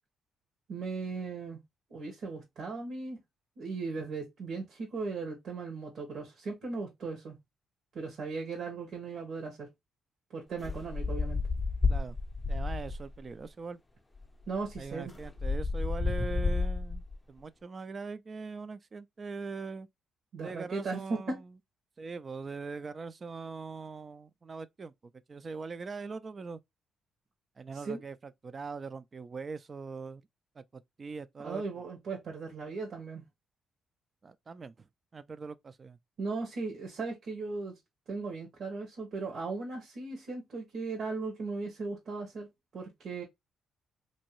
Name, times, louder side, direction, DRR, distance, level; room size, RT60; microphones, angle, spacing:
voice 1, 0.7-1.6 1.9-3.2 3.6-7.4 7.9-9.7 10.3-11.4 14.5-15.1 20.3-21.4 27.7-28.0 31.4-33.3 36.2-37.7 38.1-42.5 42.7-43.2, right 4 dB, 70° right, 1.1 m, -37 dB
sound 1, 10.6-13.2 14.1-14.2 14.5-17.2, left 3 dB, 15° left, 0.6 m, -31 dB
voice 2, 12.5-13.8 14.8-19.9 20.4-21.5 22.0-24.9 25.3-26.6 27.6-30.3 30.6-30.7 31.0-31.6 34.2-34.9 35.1-36.0, right 4 dB, 35° right, 0.3 m, -41 dB
2.9 x 2.7 x 2.9 m
cardioid pair, 90°, 0 cm